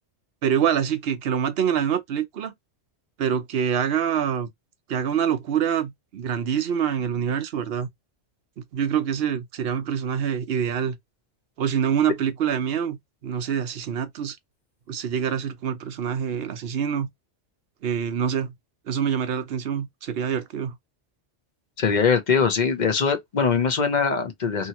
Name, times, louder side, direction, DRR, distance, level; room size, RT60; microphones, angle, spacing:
voice 1, 0.4-2.5 3.2-4.5 4.9-7.9 8.7-11.0 11.6-14.4 14.9-17.1 17.8-18.5 18.9-20.8, right 8 dB, 65° right, 0.8 m, -25 dB
voice 2, 21.8-24.7, left 6 dB, 45° left, 0.8 m, -22 dB
2.8 x 2.7 x 2.8 m
omnidirectional pair, 1.2 m